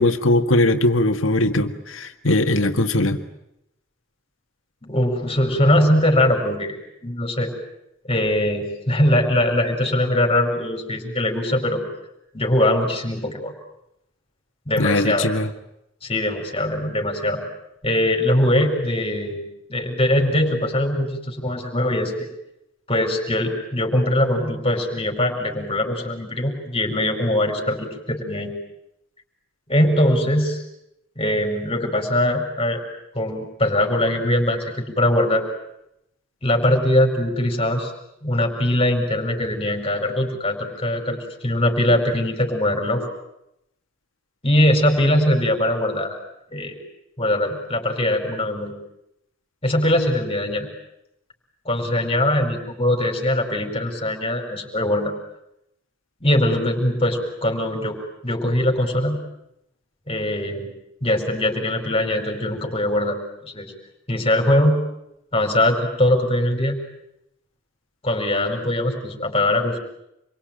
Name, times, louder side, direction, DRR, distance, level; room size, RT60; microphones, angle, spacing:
voice 1, 0.0-3.2 14.8-15.5, left 2 dB, 85° left, 6 dB, 1.9 m, -20 dB
voice 2, 4.8-6.8 7.0-7.5 8.0-11.8 12.3-13.5 14.7-15.3 16.0-17.4 17.8-19.4 19.7-22.3 22.9-28.5 29.7-30.6 31.2-32.8 33.1-35.4 36.4-37.9 38.2-41.2 41.4-43.0 44.4-46.2 46.5-46.8 47.2-48.7 49.6-50.7 51.6-55.1 56.2-58.0 58.2-59.2 60.1-60.7 61.0-63.2 63.4-63.7 64.1-64.8 65.3-66.8 68.0-69.8, left 1 dB, 30° left, 3 dB, 4.8 m, -21 dB
27.0 x 23.0 x 9.0 m, 0.82 s
head